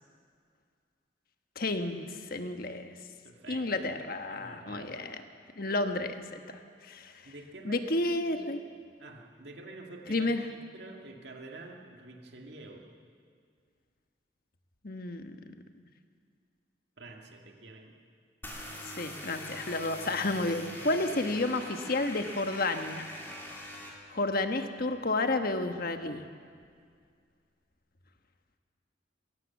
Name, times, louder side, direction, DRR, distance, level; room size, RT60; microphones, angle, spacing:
voice 1, 1.5-2.9 3.5-5.2 5.6-6.4 6.8-7.1 7.6-8.6 10.1-10.4 14.8-15.4 18.8-23.1 24.1-26.2, left 2 dB, 50° left, 7 dB, 1.3 m, -31 dB
voice 2, 3.2-3.9 4.3-5.1 7.2-8.0 8.2-8.7 9.0-12.9 17.0-17.9 20.7-20.8, right 2 dB, 65° right, 1 dB, 2.1 m, -48 dB
sound 1, 18.4-23.9, left 1 dB, 10° left, 3.1 m, -43 dB
21.5 x 17.5 x 7.3 m, 2.1 s
head